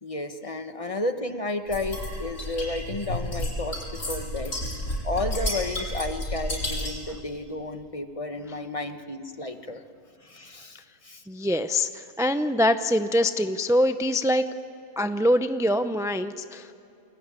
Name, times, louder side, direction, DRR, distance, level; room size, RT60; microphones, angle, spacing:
voice 1, 0.0-4.6 5.0-9.8 10.2-11.2, left 2 dB, 25° left, 8 dB, 1.3 m, -32 dB
sound 1, 1.7-7.1, equal, 80° left, 7.9 m, -31 dB
voice 2, 11.3-14.5 15.0-16.7, left 1 dB, 5° right, 9 dB, 0.3 m, -24 dB
30.0 x 21.5 x 8.9 m, 2.7 s
omnidirectional pair, 1.3 m